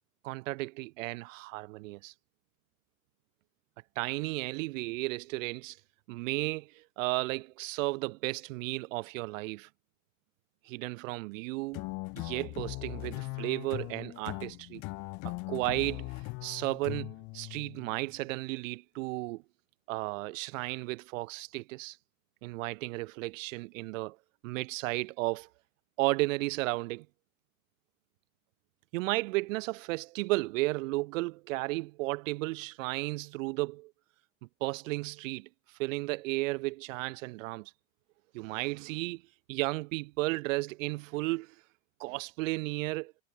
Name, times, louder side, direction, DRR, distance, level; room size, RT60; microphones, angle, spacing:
voice 1, 0.2-2.1 4.0-5.8 6.1-9.7 10.7-11.9 12.2-14.8 15.2-16.1 16.4-19.4 19.9-22.0 22.4-24.2 24.4-25.5 26.0-27.1 28.9-33.9 34.6-35.5 35.8-37.7 38.3-39.2 39.5-41.5 42.0-43.1, right 22 dB, 65° right, 3.6 m, -34 dB
sound 1, 11.7-18.1, left 26 dB, 45° left, 3.0 m, -40 dB
supercardioid pair, 160°, 41 cm